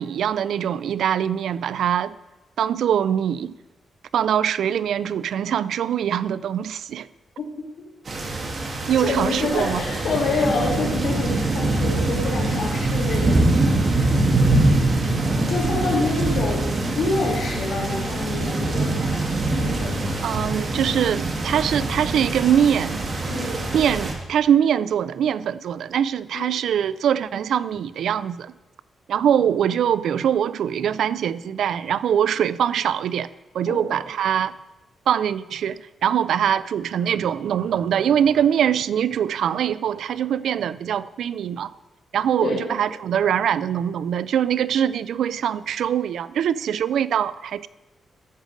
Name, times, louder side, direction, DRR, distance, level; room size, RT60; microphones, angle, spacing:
voice 1, 0.0-2.1 2.6-3.5 4.1-7.1 8.9-9.8 20.2-23.0 23.7-28.5 29.1-33.3 33.5-34.5 35.1-41.7 42.1-47.7, right 9 dB, 80° right, 0.3 m, -23 dB
voice 2, 7.4-7.7 9.0-13.5 14.1-14.2 15.5-20.0 23.3-23.7 26.3-26.6 33.7-34.0 42.4-42.7, left 3 dB, 75° left, 2.5 m, -27 dB
sound 1, 8.1-24.1, right 2 dB, 40° right, 1.7 m, -23 dB
13.5 x 5.1 x 6.4 m
wide cardioid pair, 130°, 0 cm